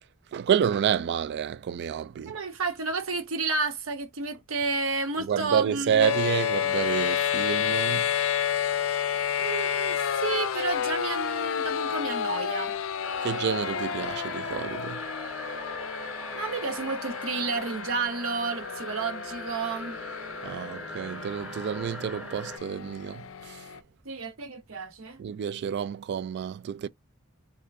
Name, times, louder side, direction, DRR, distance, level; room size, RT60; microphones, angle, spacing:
voice 1, 0.3-2.4 5.2-8.1 13.2-15.0 20.4-23.7 25.2-26.9, right 8 dB, 55° right, 0.3 m, -29 dB
voice 2, 2.3-6.1 9.4-12.8 16.3-20.0 24.0-25.2, right 4 dB, 70° right, 0.8 m, -31 dB
sound 1, 6.0-23.8, left 8 dB, 70° left, 0.4 m, -31 dB
sound 2, 13.0-22.6, left 1 dB, 5° right, 0.7 m, -40 dB
3.6 x 2.2 x 3.4 m
head